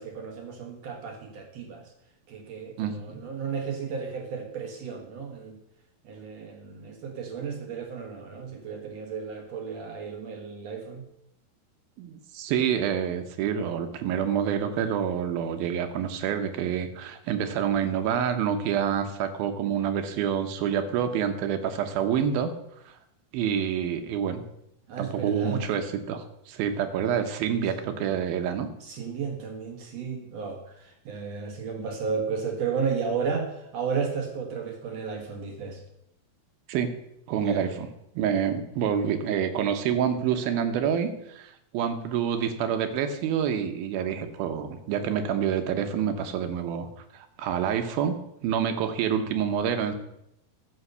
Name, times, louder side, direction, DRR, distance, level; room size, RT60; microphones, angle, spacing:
voice 1, 0.0-1.9 2.3-5.6 6.0-11.0 23.5-23.7 24.9-25.6 28.8-35.8 37.3-37.7, right 5 dB, 60° right, 3 dB, 1.9 m, -33 dB
voice 2, 2.8-3.2 12.0-22.5 22.9-23.0 23.3-24.4 25.0-28.7 36.7-36.9 37.3-37.9 38.2-46.9 47.1-49.9, right 8 dB, 80° right, 8 dB, 2.7 m, -27 dB
14.0 x 5.3 x 6.7 m, 0.80 s
omnidirectional pair, 4.4 m